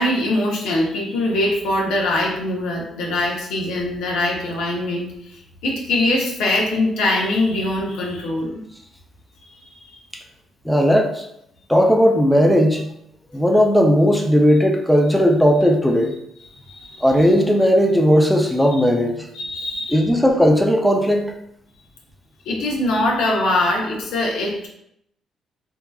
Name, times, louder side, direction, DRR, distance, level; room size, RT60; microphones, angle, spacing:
voice 1, 0.0-8.6 9.5-10.0 16.5-17.1 19.3-20.1 22.5-24.7, left 1 dB, 90° left, -2 dB, 0.8 m, -22 dB
voice 2, 10.6-11.3 11.7-12.8 13.3-16.1 17.0-19.3 19.9-21.3, equal, ahead, 1 dB, 0.5 m, -16 dB
3.5 x 2.8 x 2.3 m, 0.75 s
cardioid pair, 90°, 0 cm